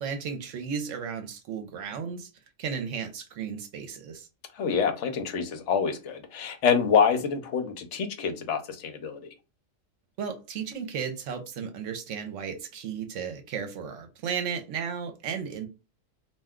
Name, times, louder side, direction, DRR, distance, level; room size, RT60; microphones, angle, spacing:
voice 1, 0.0-2.3 2.6-4.3 10.2-15.7, right 7 dB, 75° right, 1.0 m, -34 dB
voice 2, 4.6-9.2, left 6 dB, 70° left, 0.9 m, -26 dB
2.4 x 2.2 x 3.5 m
omnidirectional pair, 1.3 m